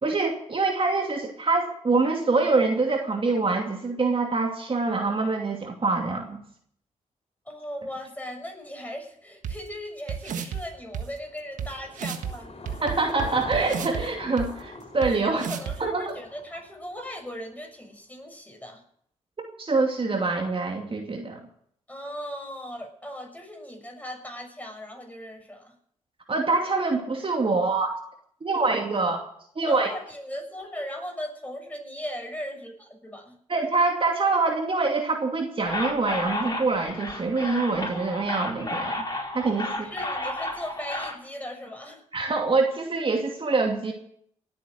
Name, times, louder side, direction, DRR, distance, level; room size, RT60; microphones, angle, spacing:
voice 1, 0.0-6.4 12.8-15.4 15.8-16.0 19.4-21.4 26.3-27.9 28.4-29.2 29.5-29.9 33.5-39.0 39.3-39.9 42.1-43.9, right 3 dB, 45° right, 2 dB, 2.6 m, -25 dB
voice 2, 7.4-12.8 15.2-18.8 21.9-25.7 29.7-33.4 39.6-42.0, equal, 10° left, 3 dB, 6.7 m, -38 dB
sound 1, 9.4-9.5 10.1-10.6 10.9-11.0 11.6-11.7 12.0-12.3 12.7-14.0 14.4-14.5 15.0-15.1 15.4-15.8, right 8 dB, 75° right, 1.5 m, -31 dB
Car passing by / Engine, 10.7-17.2, left 3 dB, 50° left, 4.5 m, -42 dB
sound 2, 35.6-41.1, left 1 dB, 30° left, 5.0 m, -32 dB
18.5 x 8.7 x 7.8 m, 0.66 s
supercardioid pair, 45°, 13 cm